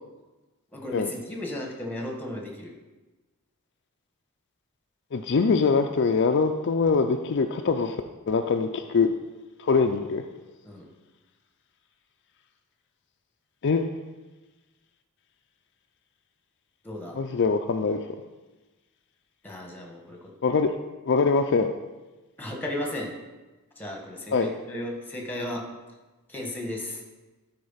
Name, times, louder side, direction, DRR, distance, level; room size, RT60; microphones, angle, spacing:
voice 1, 0.7-2.7 10.6-10.9 16.8-17.2 19.4-20.3 22.4-23.1 23.8-25.6 26.3-27.0, left 1 dB, 10° left, 1 dB, 1.5 m, -35 dB
voice 2, 5.1-8.0 8.3-9.1 9.6-10.2 13.6-13.9 17.2-18.0 20.4-20.7 21.1-21.7 24.3-24.5, left 4 dB, 55° left, 5 dB, 0.5 m, -23 dB
12.5 x 4.4 x 5.6 m, 1.2 s
head